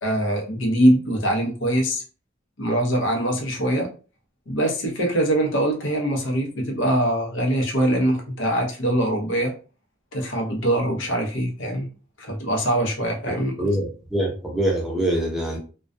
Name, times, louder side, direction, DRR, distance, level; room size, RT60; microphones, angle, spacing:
voice 1, 0.0-2.0 2.6-3.9 4.5-9.5 10.1-11.9 12.2-13.7, right 1 dB, 75° left, 0.7 m, -23 dB
voice 2, 13.3-15.6, right 1 dB, ahead, 0.5 m, -25 dB
2.3 x 2.2 x 2.5 m
head